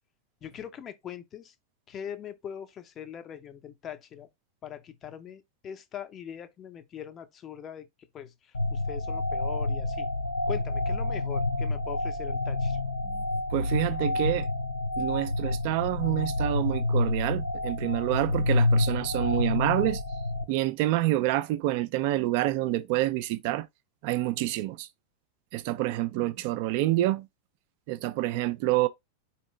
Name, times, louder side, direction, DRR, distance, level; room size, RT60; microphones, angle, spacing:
voice 1, 0.4-1.5 1.9-4.3 4.6-7.9 8.1-8.3 8.7-10.1 10.5-12.8, left 9 dB, 30° left, 0.6 m, -41 dB
sound 1, 8.5-20.4, left 2 dB, 70° left, 0.9 m, -28 dB
voice 2, 13.5-14.5 15.0-20.0 20.5-23.7 24.0-24.9 25.5-27.3 27.9-28.9, right 16 dB, 45° right, 0.4 m, -27 dB
4.4 x 2.9 x 3.1 m
figure-of-eight pair, 90°, 0 cm